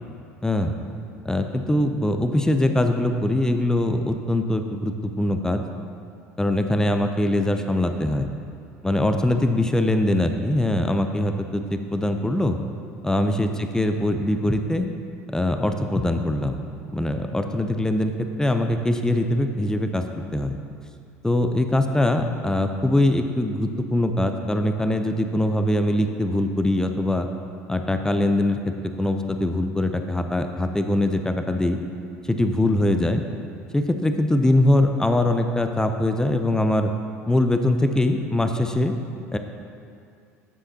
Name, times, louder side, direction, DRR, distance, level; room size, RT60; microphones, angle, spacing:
voice 1, 0.4-0.7 1.2-5.6 6.4-8.3 8.8-12.6 13.0-14.9 15.3-16.6 16.9-18.1 18.4-20.0 20.3-20.6 21.2-27.3 27.7-31.8 32.3-33.2 33.7-36.9 37.3-39.0 39.3-39.4, left 1 dB, 10° left, 6 dB, 0.6 m, -22 dB
9.7 x 7.1 x 2.9 m, 2.4 s
figure-of-eight pair, 65°, 8 cm